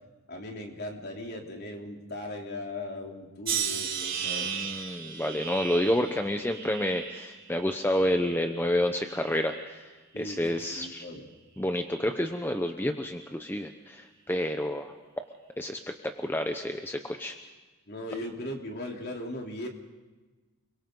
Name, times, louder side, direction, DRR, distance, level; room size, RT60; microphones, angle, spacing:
voice 1, 0.3-4.9 5.2-5.4 10.1-11.3 17.9-19.7, left 1 dB, 50° left, 1 dB, 3.4 m, -38 dB
sound 1, 3.5-8.6 9.0-9.7 10.5-10.8, right 8 dB, 40° right, 3.2 m, -36 dB
voice 2, 4.3-11.0 11.6-14.9 15.6-17.4, left 1 dB, 10° left, 5 dB, 0.9 m, -29 dB
30.0 x 22.5 x 3.9 m, 1.3 s
head